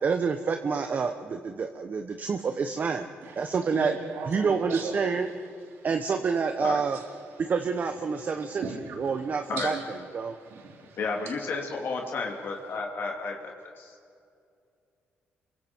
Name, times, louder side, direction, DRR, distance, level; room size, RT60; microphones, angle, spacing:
voice 1, 0.0-3.1 3.4-3.9 4.3-5.3 5.8-7.0 7.5-8.6 9.0-10.3, right 5 dB, 45° right, 6 dB, 1.1 m, -28 dB
voice 2, 3.2-4.9 6.9-7.0 8.6-9.1 9.6-9.8 10.3-11.0, right 5 dB, 85° right, 1 dB, 3.6 m, -37 dB
voice 3, 11.0-13.9, left 4 dB, 65° left, 1 dB, 3.0 m, -32 dB
28.0 x 23.5 x 4.7 m, 2.4 s
cardioid pair, 105°, 4 cm